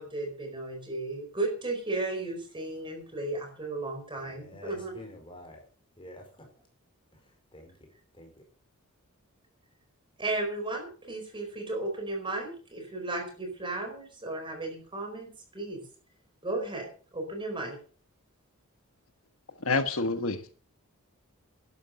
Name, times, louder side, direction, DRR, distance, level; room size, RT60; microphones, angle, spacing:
voice 1, 0.0-5.0 10.2-15.8 16.4-17.8, right 2 dB, 20° right, 4.7 m, -34 dB
voice 2, 4.2-5.6 6.0-6.5 7.5-7.7 8.1-8.3, left 1 dB, 25° left, 5.0 m, -47 dB
voice 3, 19.6-20.5, left 3 dB, 65° left, 1.4 m, -28 dB
12.0 x 11.5 x 6.5 m
head